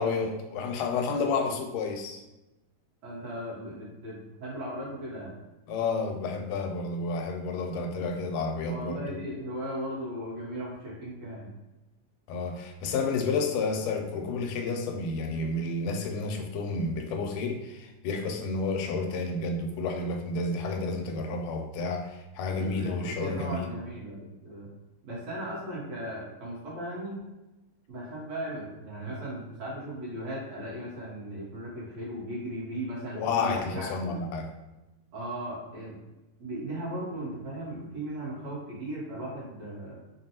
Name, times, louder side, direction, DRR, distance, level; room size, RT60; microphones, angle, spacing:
voice 1, 0.0-2.2 5.7-9.2 12.3-23.7 33.1-34.5, left 3 dB, 85° left, 3 dB, 2.1 m, -30 dB
voice 2, 3.0-5.3 8.6-11.5 22.5-24.2 24.4-24.7 25.0-27.2 27.9-34.2 35.1-36.0 36.4-40.0, right 1 dB, 65° right, -7 dB, 2.0 m, -37 dB
5.4 x 2.2 x 2.8 m, 1.0 s
omnidirectional pair, 3.7 m